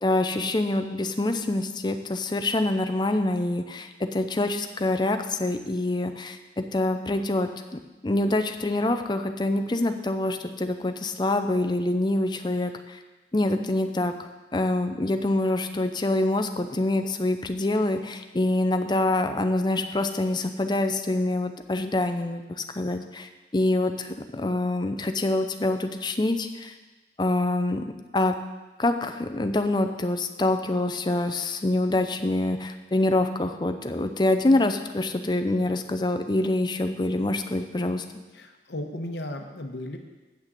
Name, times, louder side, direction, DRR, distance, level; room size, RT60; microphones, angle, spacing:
voice 1, 0.0-13.0 13.3-14.1 14.5-26.7 27.2-27.8 28.1-28.3 28.8-38.0, left 2 dB, 25° left, 7 dB, 0.6 m, -25 dB
voice 2, 38.3-40.0, left 1 dB, 75° left, 5 dB, 1.0 m, -35 dB
8.3 x 6.3 x 7.5 m, 1.2 s
head